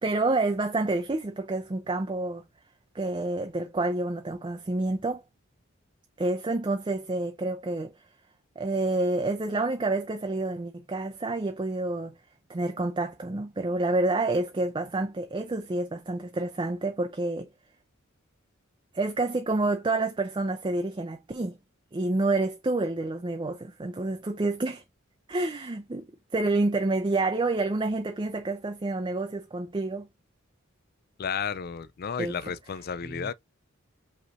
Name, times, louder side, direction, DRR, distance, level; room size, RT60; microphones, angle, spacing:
voice 1, 0.0-2.4 2.9-5.2 6.2-8.0 8.6-12.2 12.5-17.5 18.9-21.6 21.9-24.8 25.3-30.1 32.2-32.5 33.0-33.3, right 2 dB, 25° right, 0.5 m, -28 dB
voice 2, 31.2-33.3, left 6 dB, 45° left, 0.4 m, -32 dB
5.4 x 3.1 x 2.5 m
head